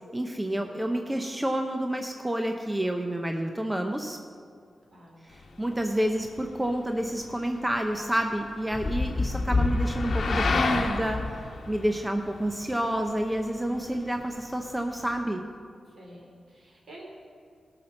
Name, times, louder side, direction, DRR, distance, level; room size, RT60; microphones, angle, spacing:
voice 1, 0.1-4.2 5.2-11.2 11.7-15.4, right 1 dB, 10° right, 4 dB, 0.7 m, -29 dB
voice 2, 4.9-5.2 15.9-17.1, right 1 dB, 60° right, -2 dB, 3.3 m, -49 dB
sound 1, 5.3-15.2, left 4 dB, 65° left, 1.1 m, -35 dB
Thunder, 8.7-12.6 13.9-14.0, left 2 dB, 30° left, 1.5 m, -29 dB
16.5 x 5.9 x 6.4 m, 2.2 s
wide cardioid pair, 105°, 0 cm